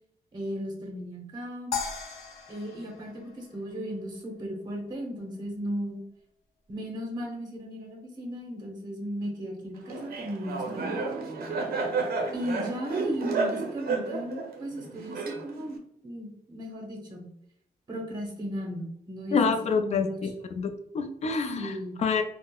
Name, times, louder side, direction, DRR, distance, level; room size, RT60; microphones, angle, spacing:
voice 1, 0.3-1.8 2.5-6.0 6.7-11.2 12.3-17.3 17.9-20.3 21.6-22.0, equal, 25° right, -1 dB, 0.8 m, -36 dB
sound 1, 1.7-4.1, left 6 dB, 85° left, 0.6 m, -37 dB
Laughter, 9.9-15.8, right 4 dB, 75° right, 0.5 m, -31 dB
voice 2, 19.3-20.3 20.6-22.2, left 5 dB, 45° left, 7 dB, 0.4 m, -27 dB
3.6 x 2.0 x 2.3 m, 0.73 s
wide cardioid pair, 125°, 16 cm